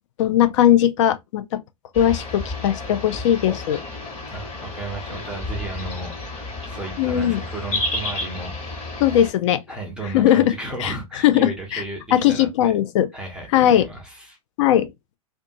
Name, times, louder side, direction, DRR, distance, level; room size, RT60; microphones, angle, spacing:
voice 1, 0.2-1.6 2.0-3.8 7.0-7.4 9.0-9.6 10.1-10.5 10.8-11.8 12.1-13.1 13.5-13.9 14.6-14.9, left 11 dB, 55° left, 0.5 m, -19 dB
sound 1, 1.9-9.3, left 2 dB, 30° left, 1.4 m, -31 dB
voice 2, 4.3-6.1 6.4-8.9 9.7-12.7 13.1-14.4, right 2 dB, 5° right, 0.8 m, -34 dB
2.6 x 2.3 x 2.6 m
figure-of-eight pair, 100°, 19 cm